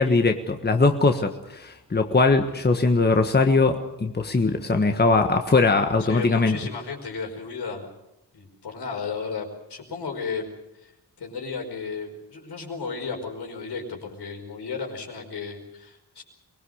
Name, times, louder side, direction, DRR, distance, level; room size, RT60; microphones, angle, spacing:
voice 1, 0.0-6.6, left 3 dB, 25° left, 5 dB, 1.5 m, -21 dB
voice 2, 6.0-7.9 8.3-10.5 10.8-10.9 11.2-16.2, left 5 dB, 75° left, 2 dB, 5.2 m, -34 dB
24.0 x 20.0 x 6.5 m, 0.91 s
wide cardioid pair, 100°, 40 cm